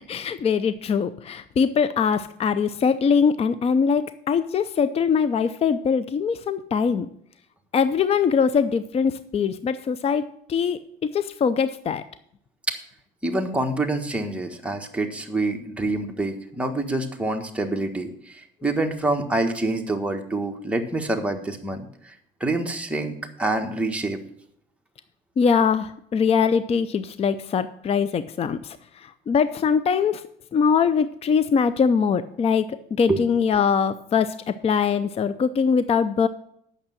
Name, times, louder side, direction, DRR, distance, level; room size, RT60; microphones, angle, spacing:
voice 1, 0.1-7.1 7.7-12.0 25.4-30.2 30.5-36.3, left 6 dB, 35° left, 13 dB, 0.5 m, -22 dB
voice 2, 13.2-22.1 22.4-24.2 33.1-33.2, right 2 dB, 5° right, 2 dB, 1.5 m, -26 dB
8.8 x 6.7 x 7.4 m, 0.69 s
cardioid pair, 110°, 17 cm